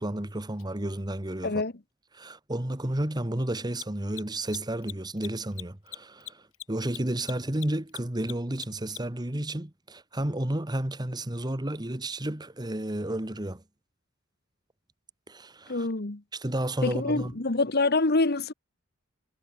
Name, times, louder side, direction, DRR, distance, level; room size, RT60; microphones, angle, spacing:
voice 1, 0.0-1.6 2.1-13.6 15.3-15.9 16.3-17.3, right 1 dB, 20° right, 1.5 m, -32 dB
Mechanisms, 0.6-0.7 3.6-9.3, left 15 dB, 90° left, 6.6 m, -42 dB
voice 2, 15.7-16.2 16.8-18.5, left 3 dB, 50° left, 1.4 m, -26 dB
head